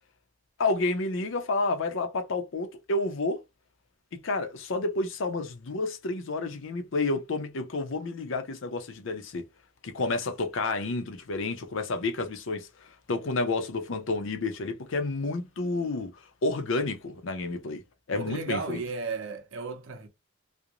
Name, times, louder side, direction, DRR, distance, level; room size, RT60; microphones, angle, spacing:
voice 1, 0.6-3.4 4.1-9.4 9.8-16.1 16.4-17.8 18.1-18.8, left 3 dB, 70° left, 0.6 m, -30 dB
voice 2, 18.1-20.1, right 4 dB, 65° right, 0.7 m, -34 dB
2.5 x 2.0 x 2.9 m
head